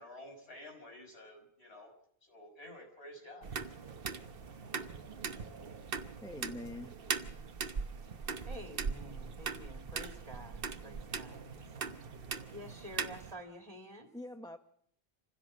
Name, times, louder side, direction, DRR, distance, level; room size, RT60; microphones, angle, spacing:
voice 1, 0.0-1.9 2.3-3.5, left 1 dB, 85° left, 2 dB, 5.8 m, -51 dB
sound 1, 3.4-13.3, right 5 dB, 60° right, 1.2 m, -40 dB
voice 2, 6.2-7.0 14.1-14.6, left 1 dB, 5° left, 7 dB, 0.9 m, -44 dB
voice 3, 8.4-12.0 12.5-14.1, equal, 35° right, 3 dB, 2.5 m, -49 dB
26.0 x 16.0 x 7.4 m, 0.69 s
omnidirectional pair, 1.1 m